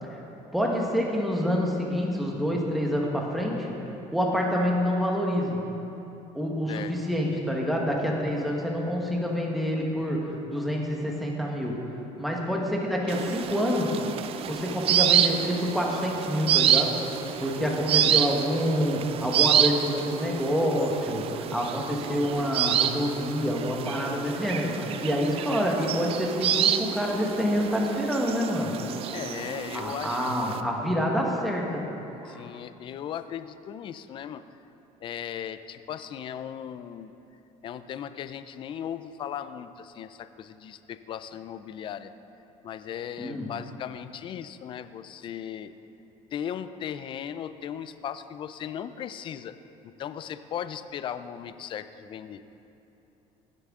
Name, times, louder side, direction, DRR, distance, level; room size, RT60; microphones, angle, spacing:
voice 1, 0.5-3.8 4.1-5.6 6.3-11.8 12.2-13.9 14.4-17.0 17.4-28.7 29.7-31.8 32.2-32.4 43.2-43.5, equal, ahead, -2 dB, 1.3 m, -27 dB
sound 1, 13.1-30.6, right 9 dB, 45° right, 0.5 m, -28 dB
voice 2, 29.1-30.2 32.3-34.4 35.0-37.1 37.6-42.1 42.6-45.7 46.3-49.6 49.8-52.4, left 9 dB, 35° left, 12 dB, 0.4 m, -37 dB
16.0 x 7.8 x 3.7 m, 2.9 s
cardioid pair, 140°, 14 cm